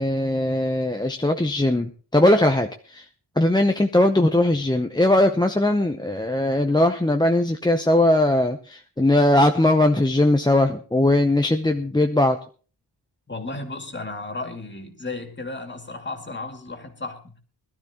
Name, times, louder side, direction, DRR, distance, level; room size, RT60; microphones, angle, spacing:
voice 1, 0.0-3.1 3.4-12.4, left 1 dB, 10° left, 5 dB, 0.7 m, -20 dB
voice 2, 13.3-17.3, left 2 dB, 25° left, 5 dB, 2.4 m, -34 dB
21.5 x 12.5 x 3.0 m, 0.38 s
wide cardioid pair, 105°, 42 cm